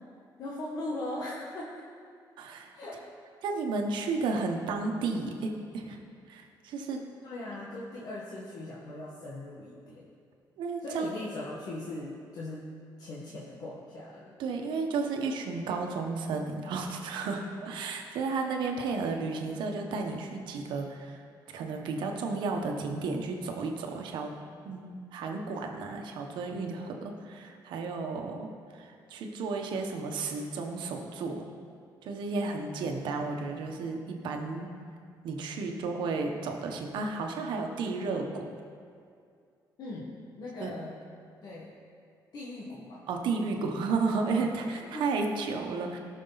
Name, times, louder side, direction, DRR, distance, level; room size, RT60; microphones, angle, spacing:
voice 1, 0.4-1.8 2.7-3.0 7.2-10.0 10.8-12.7 13.0-14.3 39.8-41.0 41.4-41.7 42.3-43.0 44.3-45.2, left 2 dB, 55° left, -5 dB, 1.5 m, -39 dB
voice 2, 2.4-2.7 3.4-6.0 6.3-7.0 10.6-11.1 14.4-21.2 21.5-24.3 24.6-31.5 32.0-34.7 35.2-38.5 40.6-40.7 43.1-46.0, right 4 dB, 85° right, 3 dB, 1.3 m, -33 dB
18.0 x 6.4 x 4.1 m, 2.3 s
cardioid pair, 135°, 8 cm